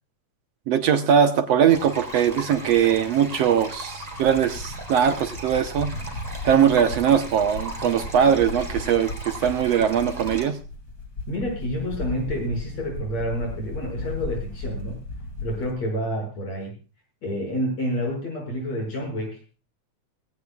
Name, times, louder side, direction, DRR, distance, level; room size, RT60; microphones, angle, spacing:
voice 1, 0.7-5.9 6.5-10.6, right 8 dB, 65° right, 8 dB, 2.0 m, -21 dB
sound 1, 1.7-10.5, right 1 dB, 10° right, 3.2 m, -38 dB
sound 2, 4.1-15.7, left 2 dB, 40° left, 3.5 m, -35 dB
voice 2, 11.3-15.0 15.4-16.8 17.2-19.4, equal, 60° left, 2 dB, 7.4 m, -29 dB
18.5 x 17.0 x 2.4 m, 0.35 s
omnidirectional pair, 3.4 m